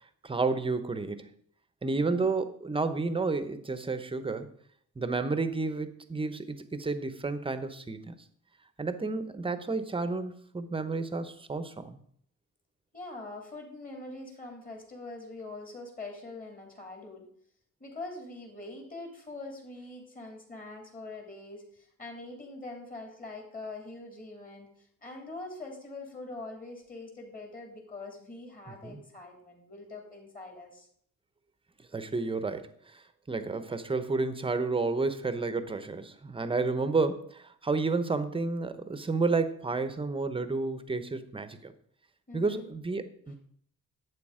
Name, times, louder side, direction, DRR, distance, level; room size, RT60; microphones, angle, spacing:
voice 1, 0.2-1.3 1.8-4.5 5.0-8.1 8.8-12.0 28.8-29.0 31.9-41.7 42.3-43.3, right 3 dB, 15° right, 11 dB, 0.9 m, -31 dB
voice 2, 1.9-2.2 12.9-17.3 17.8-30.9 36.7-36.9 42.3-42.7 43.3-43.4, left 2 dB, 25° left, 2 dB, 3.3 m, -43 dB
11.5 x 8.4 x 5.0 m, 0.63 s
cardioid pair, 140°, 31 cm